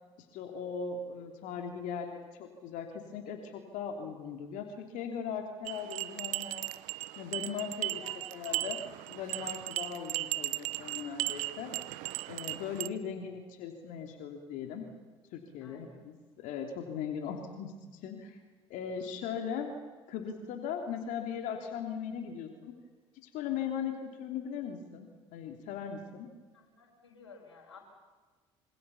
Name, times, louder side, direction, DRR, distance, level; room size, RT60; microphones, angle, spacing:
voice 1, 0.2-6.7 7.2-8.0 8.3-8.8 9.1-11.7 12.3-14.9 15.3-18.4 18.7-19.7 20.1-22.7 23.2-26.3, left 7 dB, 65° left, 4 dB, 3.2 m, -39 dB
sound 1, 5.7-12.9, right 19 dB, 70° right, 0.9 m, -37 dB
voice 2, 8.0-8.6 15.6-16.1 26.5-27.8, left 4 dB, 90° left, -2 dB, 5.5 m, -54 dB
26.5 x 26.0 x 7.2 m, 1.3 s
hypercardioid pair, 60°, 14 cm